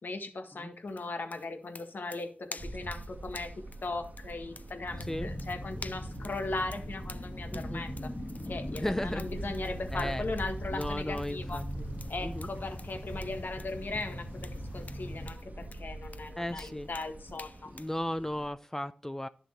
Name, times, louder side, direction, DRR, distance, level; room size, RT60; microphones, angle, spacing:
voice 1, 0.0-8.1 8.5-11.6 12.1-17.7, left 3 dB, 75° left, 6 dB, 1.7 m, -38 dB
sound 1, 0.9-18.0, left 3 dB, 55° left, 0.7 m, -50 dB
sound 2, 2.6-18.5, right 2 dB, 55° right, 1.4 m, -44 dB
sound 3, 4.9-15.3, left 1 dB, 40° left, 2.2 m, -41 dB
voice 2, 7.5-7.8 8.7-9.3 9.9-10.3 10.7-11.9 12.2-12.5 16.4-16.9 17.7-19.3, left 1 dB, 15° left, 11 dB, 0.6 m, -35 dB
11.5 x 6.5 x 4.5 m, 0.42 s
cardioid pair, 40°, 3 cm